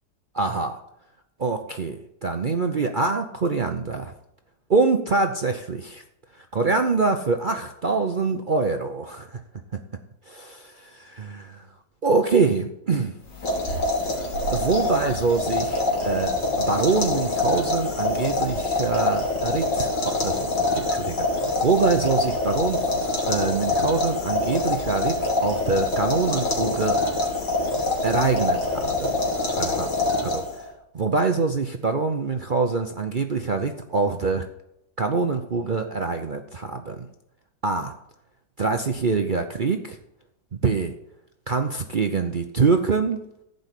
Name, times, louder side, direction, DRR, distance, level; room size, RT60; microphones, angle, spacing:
voice 1, 0.3-0.8 1.4-4.1 4.7-6.0 6.5-9.3 10.3-11.6 12.0-13.1 14.5-21.3 21.6-22.9 23.3-27.0 28.0-29.2 29.6-29.9 30.2-30.4 30.9-34.5 35.0-37.1 37.6-37.9 38.6-40.0 40.6-40.9 41.5-43.2, right 4 dB, 50° right, 5 dB, 0.6 m, -24 dB
sound 1, 13.3-30.7, left 2 dB, 85° left, 3.0 m, -25 dB
15.0 x 5.3 x 8.2 m, 0.82 s
omnidirectional pair, 1.8 m